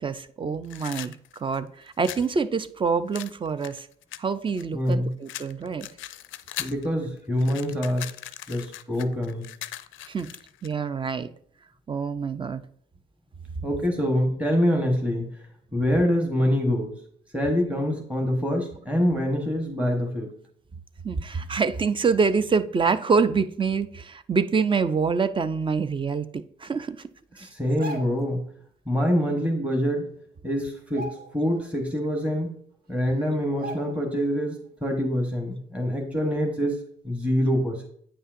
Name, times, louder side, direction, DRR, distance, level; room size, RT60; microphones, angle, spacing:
voice 1, 0.0-3.9 4.2-5.9 10.1-10.3 10.6-11.3 11.9-12.6 21.0-27.0 27.4-27.5, right 5 dB, 25° right, 13 dB, 0.4 m, -26 dB
sound 1, 0.6-2.3 3.1-4.9 5.3-6.9 7.2-10.7, left 13 dB, 80° left, 0.4 m, -39 dB
voice 2, 4.7-5.1 6.6-8.1 8.5-9.4 13.6-15.3 15.7-16.9 17.3-20.3 27.4-28.4 28.9-30.1 30.4-32.5 32.9-36.8 37.0-37.9, equal, 5° right, 0 dB, 1.1 m, -25 dB
sound 2, 27.6-28.3 29.8-29.9 30.2-30.4 30.8-31.7 32.1-32.2 32.9-33.0 33.6-34.2 34.6-34.7, right 2 dB, 50° right, 1.2 m, -39 dB
8.7 x 5.5 x 2.5 m, 0.64 s
cardioid pair, 90°, 20 cm